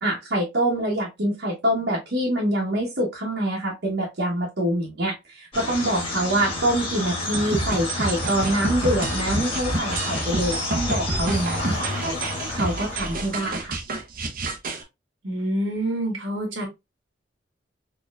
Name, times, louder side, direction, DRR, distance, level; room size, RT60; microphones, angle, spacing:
voice 1, 0.0-13.8, right 1 dB, 65° right, 1.1 m, -25 dB
sound 1, 5.5-13.6, left 2 dB, 25° left, 1.7 m, -30 dB
sound 2, 7.3-14.8, right 2 dB, 45° right, 0.7 m, -29 dB
voice 2, 15.2-16.7, right 1 dB, 90° right, 1.5 m, -27 dB
4.1 x 2.9 x 2.3 m
head